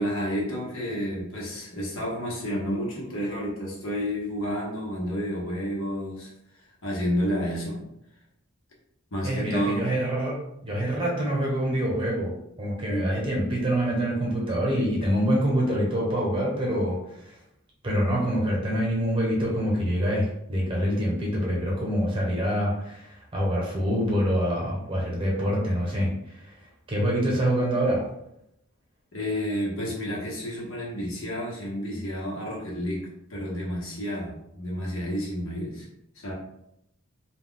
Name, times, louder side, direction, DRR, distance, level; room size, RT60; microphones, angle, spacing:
voice 1, 0.0-6.3 6.8-7.8 9.1-9.8 12.9-13.1 29.1-35.9 36.1-36.3, equal, 75° left, -3 dB, 0.9 m, -30 dB
voice 2, 9.2-10.4 10.6-17.4 17.8-26.6 26.9-28.0, equal, 25° right, -4 dB, 0.8 m, -26 dB
2.2 x 2.2 x 3.7 m, 0.80 s
head